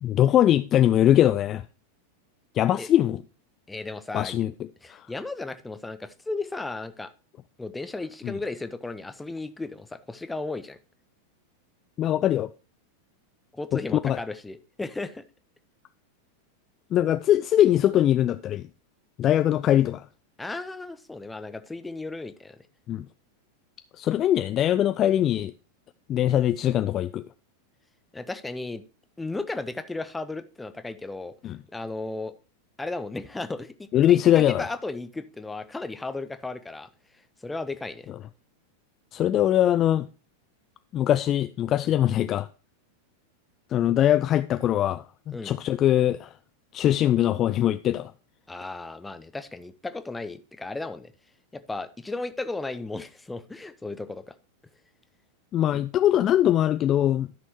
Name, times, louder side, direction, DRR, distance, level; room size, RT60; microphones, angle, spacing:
voice 1, 0.0-1.6 2.6-3.2 4.1-4.5 4.9-5.0 8.2-8.3 12.0-12.5 13.7-13.8 14.0-14.2 16.9-18.6 19.2-20.0 22.9-23.0 24.0-25.5 26.1-27.2 31.4-31.6 33.9-34.6 39.1-40.1 40.9-42.5 43.7-46.3 46.7-48.1 55.5-57.3, left 11 dB, 30° left, 0.3 m, -22 dB
voice 2, 3.7-4.4 4.8-7.1 7.6-10.8 13.5-15.2 20.4-22.6 28.1-28.8 29.2-31.3 31.7-32.3 32.8-36.9 37.4-38.1 41.8-41.9 45.3-45.5 48.5-51.1 51.5-54.2 55.7-55.8, left 3 dB, 10° left, 0.7 m, -35 dB
13.5 x 6.1 x 2.9 m
figure-of-eight pair, 90°, 0 cm